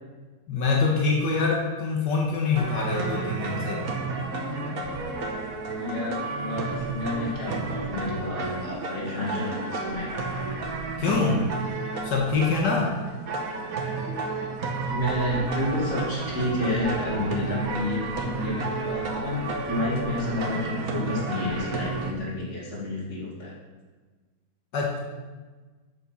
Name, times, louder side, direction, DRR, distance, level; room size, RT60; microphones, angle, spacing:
voice 1, 0.5-3.9 11.0-11.5 12.0-13.0 24.7-25.0, left 4 dB, 85° left, -1 dB, 1.9 m, -24 dB
sound 1, 2.6-22.1, right 3 dB, 60° right, 1.6 m, -32 dB
voice 2, 5.8-10.1 14.1-14.2 14.8-23.5, left 1 dB, 40° left, -5 dB, 3.0 m, -30 dB
9.0 x 6.7 x 5.9 m, 1.3 s
omnidirectional pair, 1.8 m